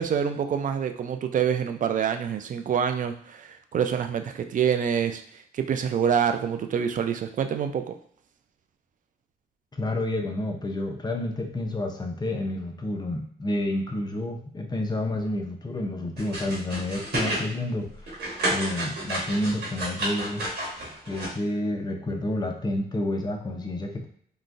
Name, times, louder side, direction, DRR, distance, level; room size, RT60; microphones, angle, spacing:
voice 1, 0.0-8.0, right 8 dB, 50° right, 7 dB, 0.4 m, -26 dB
voice 2, 9.7-17.9 18.5-20.4 21.1-24.1, left 1 dB, 25° left, 3 dB, 0.6 m, -29 dB
sound 1, 16.2-17.4 17.8-21.3, right 1 dB, 70° right, 1.3 m, -30 dB
3.8 x 2.2 x 2.5 m, 0.63 s
cardioid pair, 80°, 17 cm